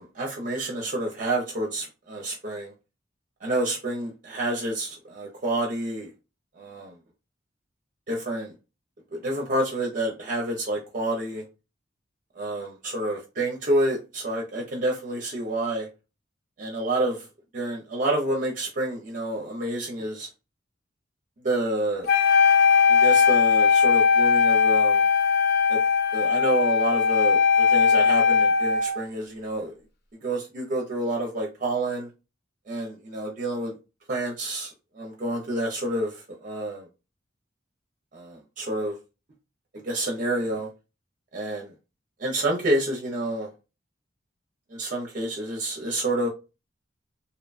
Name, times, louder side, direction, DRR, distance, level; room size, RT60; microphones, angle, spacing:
voice 1, 0.0-2.7 3.4-6.1 6.6-6.9 8.1-8.5 9.2-11.4 12.4-15.9 16.6-17.2 17.5-20.3 21.4-22.1 22.9-25.0 25.7-25.8 26.1-29.7 30.2-32.1 32.7-33.7 34.1-34.7 35.0-36.1 36.4-36.8 38.1-38.9 39.8-40.7 41.3-41.7 42.2-43.5 44.8-46.3, right 1 dB, 45° right, 0.5 m, -28 dB
Wind instrument woodwind instrument, 22.1-29.0, left 6 dB, 55° left, 0.5 m, -19 dB
2.8 x 2.1 x 2.3 m
head